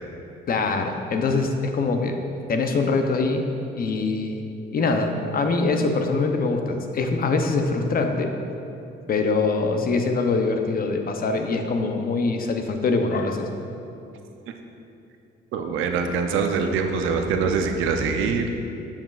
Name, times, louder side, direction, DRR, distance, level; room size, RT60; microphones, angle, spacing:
voice 1, 0.5-2.2 2.5-3.5 3.7-8.3 9.1-13.4, left 3 dB, 50° left, 5 dB, 0.7 m, -23 dB
voice 2, 15.5-18.5, right 5 dB, 90° right, 5 dB, 0.6 m, -24 dB
7.8 x 7.1 x 2.4 m, 2.7 s
cardioid pair, 90°, 20 cm